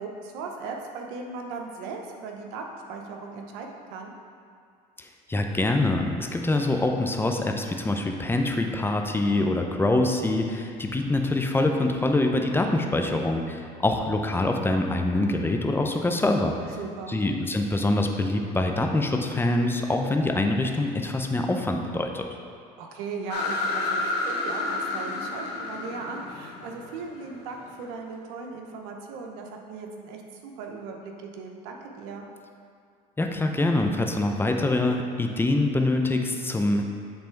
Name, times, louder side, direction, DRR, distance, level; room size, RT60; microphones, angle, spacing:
voice 1, 0.0-2.6 2.9-4.1 16.8-17.2 22.8-32.3, right 4 dB, 80° right, 2 dB, 0.8 m, -38 dB
voice 2, 5.0-16.5 17.1-22.3 33.2-36.8, left 2 dB, 10° left, 3 dB, 0.6 m, -25 dB
sound 1, 23.3-27.8, left 2 dB, 65° left, 1.1 m, -30 dB
7.8 x 3.4 x 4.5 m, 2.3 s
supercardioid pair, 85°, 19 cm